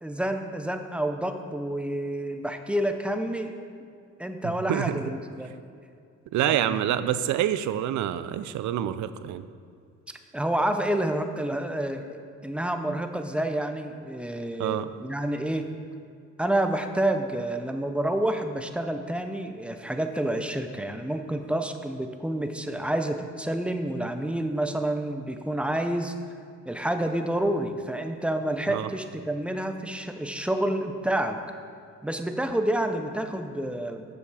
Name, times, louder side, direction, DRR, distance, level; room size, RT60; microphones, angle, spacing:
voice 1, 0.0-3.5 4.2-5.5 6.4-6.8 10.3-15.7 16.4-26.1 26.7-31.4 32.0-34.0, right 1 dB, 5° right, 6 dB, 0.6 m, -29 dB
voice 2, 4.4-5.0 6.3-9.5 14.6-14.9 28.7-28.9, right 11 dB, 70° right, 13 dB, 0.5 m, -27 dB
8.3 x 6.9 x 4.9 m, 2.4 s
cardioid pair, 90°, 30 cm